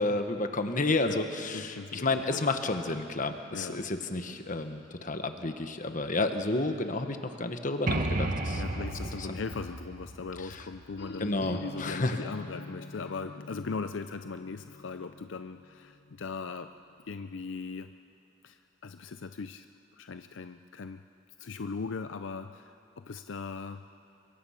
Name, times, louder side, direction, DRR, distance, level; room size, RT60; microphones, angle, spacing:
voice 1, 0.0-8.6 9.3-9.4 10.5-10.6 11.2-12.2, left 2 dB, 45° left, 7 dB, 1.3 m, -31 dB
voice 2, 1.5-2.4 3.5-3.8 8.6-16.7 17.0-17.9 18.4-19.7 20.0-21.0 21.4-23.8, left 4 dB, 75° left, 9 dB, 0.5 m, -39 dB
sound 1, 7.9-11.5, right 2 dB, 45° right, 1.4 m, -33 dB
sound 2, 11.0-16.7, left 3 dB, 60° left, 1.1 m, -46 dB
25.0 x 23.0 x 5.8 m, 2.6 s
head